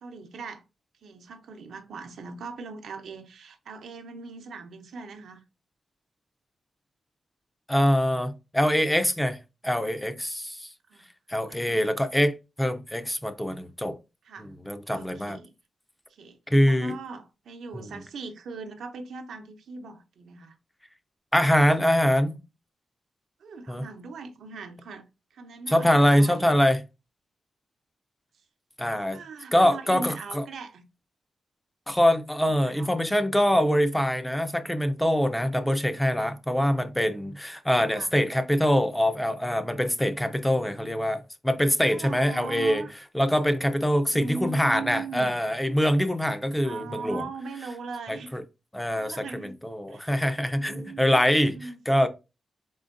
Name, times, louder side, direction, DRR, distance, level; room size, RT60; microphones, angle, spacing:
voice 1, 0.0-0.6 1.0-5.4 10.9-11.0 11.5-11.8 14.2-14.5 14.9-15.5 16.1-20.6 21.4-21.5 21.7-22.4 23.4-25.0 25.3-26.5 29.1-30.8 32.4-33.0 37.9-38.2 41.8-42.9 44.1-45.3 46.6-48.4 48.9-49.5 49.9-50.2 50.6-51.2 51.5-51.8, right 4 dB, 90° right, 0.7 m, -40 dB
voice 2, 7.7-9.4 9.6-10.7 11.3-14.0 14.6-15.4 16.5-17.0 17.7-17.9 21.3-22.4 23.7-23.9 25.7-26.8 28.8-29.2 29.5-30.4 31.9-42.8 43.1-47.2 48.1-48.4 48.7-52.1, equal, 5° left, 0.4 m, -24 dB
4.3 x 3.7 x 2.5 m
wide cardioid pair, 140°, 0 cm